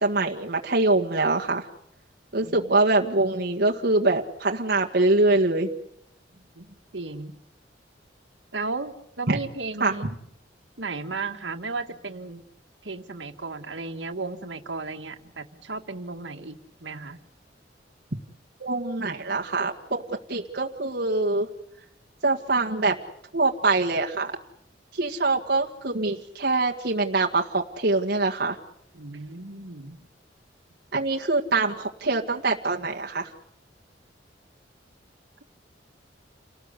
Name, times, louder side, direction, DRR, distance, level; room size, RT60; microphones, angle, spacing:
voice 1, 0.0-1.7 2.3-5.7 9.3-9.4 9.8-9.9 18.6-21.5 22.2-23.0 23.3-24.3 24.9-28.6 30.9-33.3, right 2 dB, 60° right, 0 dB, 1.8 m, -24 dB
voice 2, 2.4-2.8 6.3-7.4 8.5-10.2 10.8-12.4 12.8-17.2 28.9-30.0, right 3 dB, 80° right, 6 dB, 1.9 m, -35 dB
29.5 x 19.0 x 8.3 m, 0.76 s
head